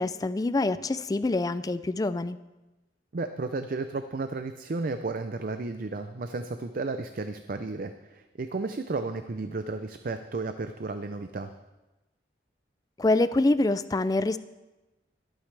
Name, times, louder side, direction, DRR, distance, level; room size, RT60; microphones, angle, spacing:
voice 1, 0.0-2.4 13.0-14.4, left 2 dB, 20° left, 14 dB, 0.3 m, -25 dB
voice 2, 3.1-11.5, right 3 dB, 50° right, 9 dB, 0.5 m, -33 dB
22.5 x 9.0 x 3.3 m, 1.1 s
head